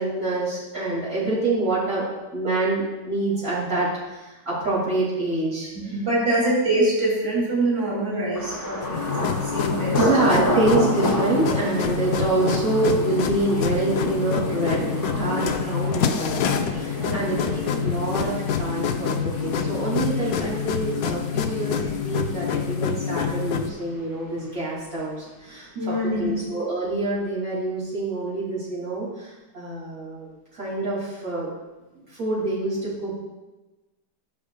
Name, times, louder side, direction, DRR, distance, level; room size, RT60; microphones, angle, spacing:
voice 1, 0.0-2.0 2.3-3.9 4.2-5.7 10.0-17.5 17.8-31.5 32.1-33.1, right 2 dB, 55° right, -8 dB, 2.7 m, -26 dB
voice 2, 5.7-10.0 17.0-17.4 25.7-26.3, right 1 dB, 35° right, -6 dB, 2.8 m, -25 dB
Thunder, 8.3-24.1 24.4-25.0 25.4-25.7, equal, 15° left, 1.2 m, -31 dB
sound 1, 8.8-23.7, left 7 dB, 70° left, 0.9 m, -26 dB
12.5 x 6.8 x 2.2 m, 1.1 s
omnidirectional pair, 1.8 m